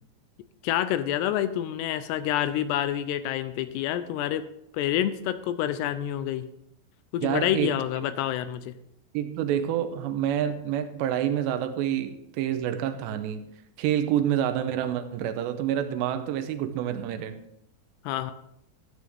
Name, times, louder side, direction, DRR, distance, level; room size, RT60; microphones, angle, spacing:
voice 1, 0.6-4.4 4.7-6.5 7.1-8.8 18.1-18.3, left 11 dB, 80° left, 12 dB, 2.6 m, -28 dB
voice 2, 7.2-7.7 9.1-13.5 13.8-17.4, right 10 dB, 85° right, 9 dB, 2.9 m, -28 dB
12.5 x 9.4 x 3.5 m, 0.78 s
omnidirectional pair, 5.0 m